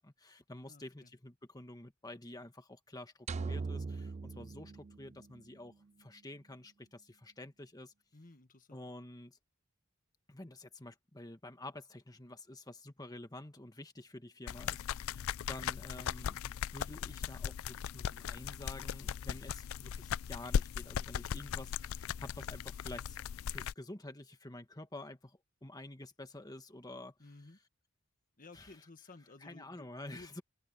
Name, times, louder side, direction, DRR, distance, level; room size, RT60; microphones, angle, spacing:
voice 1, 0.0-5.7 6.0-7.9 8.7-9.4 10.3-23.2 23.4-27.3 28.5-28.8 29.4-30.4, left 1 dB, 15° left, 1.5 m, -49 dB
voice 2, 0.6-1.1 8.1-8.8 22.1-22.3 27.2-27.6 28.4-30.4, left 2 dB, 40° left, 1.4 m, -56 dB
sound 1, 3.3-5.6, right 4 dB, 30° right, 0.4 m, -40 dB
sound 2, 14.5-23.7, left 8 dB, 65° left, 0.3 m, -38 dB
head